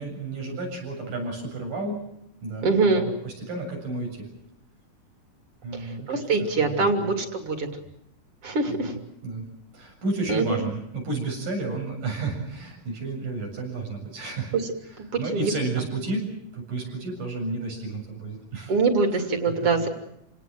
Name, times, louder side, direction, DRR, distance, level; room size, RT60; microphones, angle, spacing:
voice 1, 0.0-2.0 2.4-4.3 5.6-7.2 8.7-9.5 9.7-14.5 14.8-16.3 16.5-18.7 19.2-19.7, right 3 dB, 90° right, 1 dB, 9.0 m, -32 dB
voice 2, 2.6-3.1 6.1-7.7 8.4-8.9 10.3-10.6 15.3-15.5 18.7-19.9, right 3 dB, 45° right, 5 dB, 3.7 m, -23 dB
28.5 x 18.5 x 7.7 m, 0.81 s
omnidirectional pair, 3.7 m